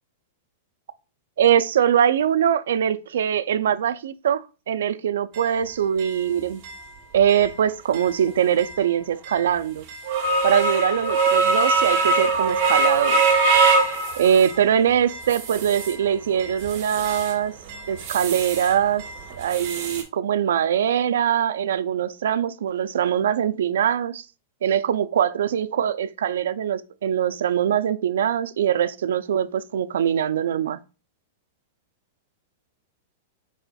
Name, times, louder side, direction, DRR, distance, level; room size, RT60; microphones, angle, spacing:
voice 1, 1.4-6.6 7.1-9.9 10.4-13.2 14.2-17.5 17.9-19.0 19.4-24.2 24.6-30.8, right 9 dB, 85° right, 0.3 m, -22 dB
sound 1, 5.3-5.4 6.0-6.1 6.6-6.7 7.3-7.5 7.9-8.1 8.6-8.7 9.3-9.4 9.9-14.6 15.1-16.0 16.4-17.3 17.7-18.7 19.0-20.0, right 3 dB, 35° right, 1.2 m, -23 dB
4.8 x 4.1 x 2.2 m
supercardioid pair, 165°, 0 cm